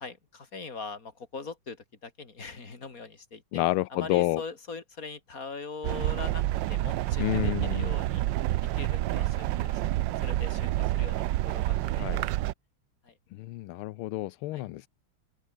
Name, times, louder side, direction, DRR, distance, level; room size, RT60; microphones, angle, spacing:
voice 1, 0.0-3.6 3.9-8.2 8.8-9.8 10.2-12.2 13.0-13.1 14.5-14.7, left 4 dB, 40° left, 3.3 m, -41 dB
voice 2, 3.5-4.4 7.2-7.9 12.0-12.2 13.3-14.9, left 17 dB, 85° left, 1.5 m, -29 dB
sound 1, 5.8-12.5, right 15 dB, 70° right, 1.2 m, -28 dB
open air
omnidirectional pair, 2.3 m